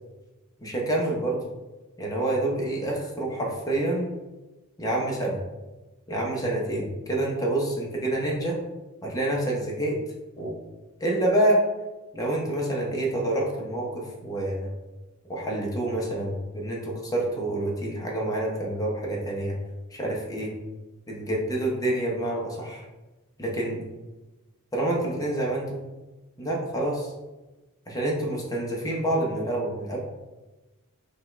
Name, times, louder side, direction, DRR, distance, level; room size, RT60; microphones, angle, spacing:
voice 1, 0.6-1.4 2.0-4.1 4.8-5.4 6.1-8.6 9.0-10.0 10.4-10.5 11.0-11.6 12.1-14.7 15.3-19.6 19.9-20.5 21.1-22.8 23.4-23.8 24.7-25.8 26.4-27.1 27.9-30.0, right 1 dB, 15° left, -3 dB, 0.9 m, -27 dB
5.3 x 2.5 x 3.2 m, 1.1 s
head